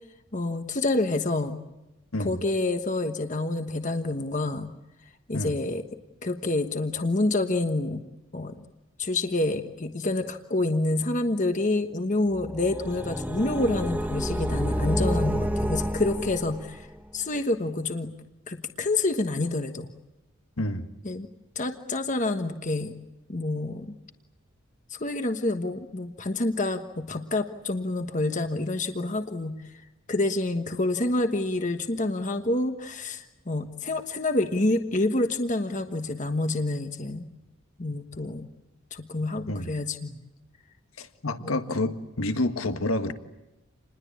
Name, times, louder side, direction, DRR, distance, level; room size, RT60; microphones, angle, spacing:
voice 1, 0.3-1.6 2.2-4.7 5.3-5.8 6.2-8.0 8.3-8.6 9.0-16.9 17.1-18.1 18.5-19.9 21.0-21.3 21.5-22.9 23.3-23.9 24.9-29.6 30.1-37.3 37.8-38.5 38.9-40.2 41.4-41.5, left 2 dB, 35° left, 7 dB, 1.3 m, -28 dB
sound 1, 12.3-17.0, equal, 10° right, 0.9 m, -29 dB
voice 2, 41.0-43.1, left 1 dB, 85° left, 8 dB, 1.6 m, -28 dB
28.5 x 21.0 x 8.6 m, 0.96 s
head